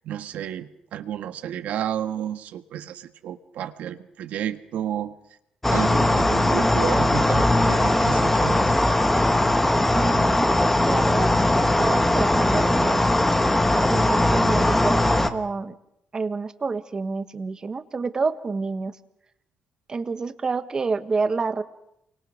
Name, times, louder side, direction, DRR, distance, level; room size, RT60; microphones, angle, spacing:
voice 1, 0.0-5.1 5.7-8.7, right 10 dB, 75° right, 9 dB, 1.5 m, -31 dB
sound 1, 5.6-15.3, left 1 dB, 10° left, 1.5 m, -20 dB
voice 2, 9.9-11.3 11.8-13.1 13.7-15.7 16.1-18.9 19.9-21.6, right 4 dB, 30° right, 11 dB, 1.5 m, -28 dB
29.0 x 24.0 x 6.5 m, 0.79 s
cardioid pair, 120°, 3 cm